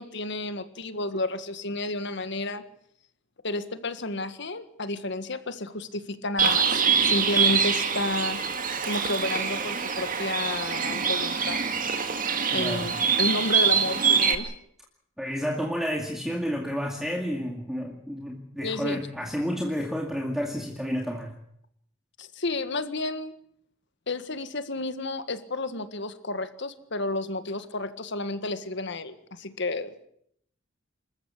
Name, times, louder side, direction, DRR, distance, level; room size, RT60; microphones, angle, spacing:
voice 1, 0.0-2.6 3.4-8.4 8.9-11.6 12.5-14.5 18.6-19.0 22.2-23.3 24.1-30.1, left 2 dB, 65° left, 11 dB, 1.7 m, -31 dB
Bird, 6.4-14.3, right 6 dB, 45° right, 2.1 m, -25 dB
voice 2, 12.5-12.9 15.2-21.3, equal, ahead, 0 dB, 2.3 m, -30 dB
27.0 x 14.5 x 8.5 m, 0.72 s
head